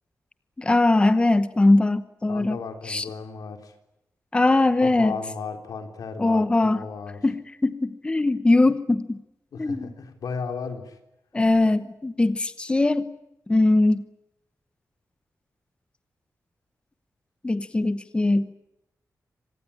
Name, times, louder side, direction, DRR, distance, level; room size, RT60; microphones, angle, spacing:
voice 1, 0.6-2.6 2.9-3.1 4.3-5.1 6.2-6.8 7.2-9.2 9.6-9.9 11.3-13.0 13.5-14.0 17.4-18.5, left 2 dB, 15° left, 13 dB, 0.9 m, -21 dB
voice 2, 2.3-3.7 4.8-7.2 9.5-11.0, left 5 dB, 90° left, 6 dB, 3.6 m, -35 dB
26.0 x 18.5 x 9.9 m, 0.87 s
wide cardioid pair, 145°, 6 cm